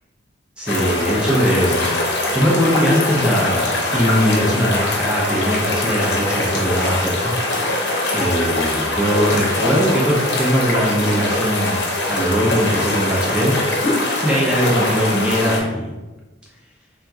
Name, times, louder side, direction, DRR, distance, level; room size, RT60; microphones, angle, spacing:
voice 1, 0.6-1.9 2.3-11.8 12.1-13.5 13.9-15.9, equal, 5° right, -5 dB, 0.7 m, -20 dB
sound 1, 0.7-15.6, left 2 dB, 60° left, 0.7 m, -22 dB
3.6 x 2.9 x 2.3 m, 1.1 s
head